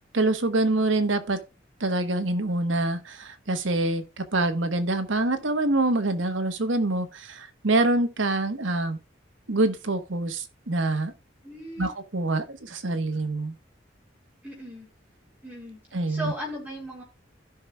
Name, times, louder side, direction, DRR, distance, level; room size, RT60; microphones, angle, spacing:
voice 1, 0.1-1.4 1.8-9.0 9.5-11.1 11.8-13.5 15.9-16.3, right 2 dB, 85° right, 1.3 m, -25 dB
voice 2, 11.4-11.9 14.4-14.9 15.4-15.8 16.1-17.0, equal, 10° right, 4.1 m, -36 dB
16.0 x 5.7 x 2.3 m
head